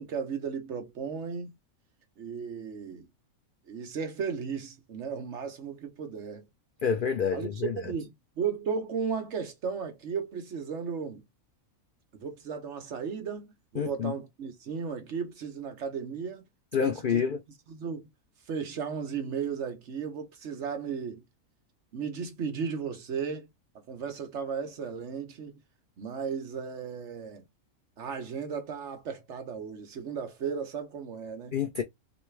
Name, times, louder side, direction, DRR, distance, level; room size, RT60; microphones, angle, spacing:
voice 1, 0.0-1.5 2.2-3.1 3.7-6.4 7.3-11.2 12.1-16.4 16.8-17.2 17.7-18.1 18.5-21.2 21.9-23.5 23.9-25.6 26.0-27.4 28.0-31.6, right 6 dB, 60° right, 1.1 m, -35 dB
voice 2, 6.8-7.9 13.8-14.1 16.7-17.4 31.5-31.8, left 7 dB, 75° left, 0.4 m, -28 dB
3.3 x 3.0 x 3.2 m
omnidirectional pair, 1.5 m